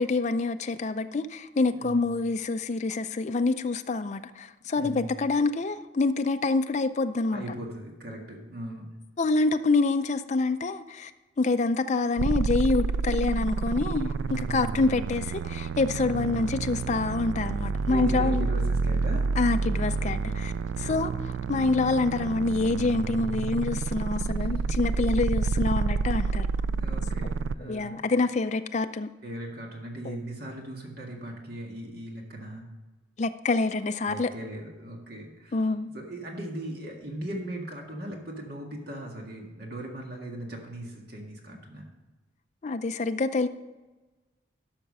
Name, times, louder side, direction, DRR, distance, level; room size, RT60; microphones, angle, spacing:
voice 1, 0.0-7.5 9.2-11.1 11.4-18.5 19.4-21.1 21.5-26.5 27.6-29.1 30.0-30.1 33.2-34.3 35.5-35.9 42.6-43.5, left 3 dB, 35° left, 9 dB, 0.4 m, -26 dB
voice 2, 1.7-2.1 4.7-5.0 7.3-8.9 14.1-14.8 16.1-16.4 17.9-19.3 20.8-21.2 24.2-24.7 26.6-28.0 29.2-32.7 34.0-41.9, right 1 dB, 55° right, 1 dB, 1.9 m, -39 dB
sound 1, 12.2-27.5, right 4 dB, 75° right, 0.3 m, -29 dB
12.5 x 5.8 x 5.4 m, 1.2 s
head